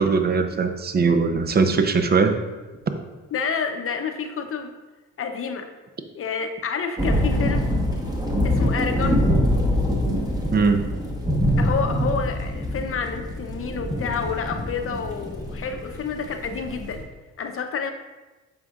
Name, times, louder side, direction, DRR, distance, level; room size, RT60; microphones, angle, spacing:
voice 1, 0.0-2.3 10.5-10.8, right 4 dB, 30° right, 7 dB, 0.6 m, -20 dB
voice 2, 3.3-4.7 5.2-5.7 6.1-7.7 8.4-9.2 11.6-17.1 17.4-17.9, left 5 dB, 45° left, 5 dB, 0.7 m, -29 dB
sound 1, 7.0-17.0, equal, 15° right, 1.2 m, -24 dB
7.9 x 5.5 x 2.4 m, 1.2 s
cardioid pair, 90°, 30 cm